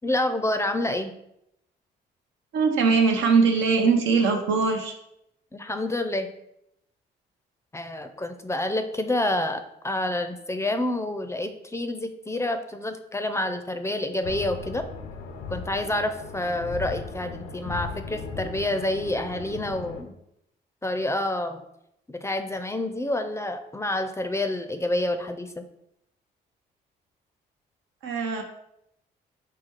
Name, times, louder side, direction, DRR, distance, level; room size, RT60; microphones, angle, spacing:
voice 1, 0.0-1.1 5.5-6.3 7.7-14.8 15.5-20.1 20.8-21.6 22.1-25.6, left 1 dB, 15° left, 8 dB, 0.4 m, -28 dB
voice 2, 2.5-4.9 28.0-28.4, right 4 dB, 80° right, 3 dB, 0.7 m, -21 dB
sound 1, 14.2-20.0, left 5 dB, 85° left, 0.5 m, -37 dB
4.1 x 2.3 x 4.5 m, 0.80 s
supercardioid pair, 55°, 19 cm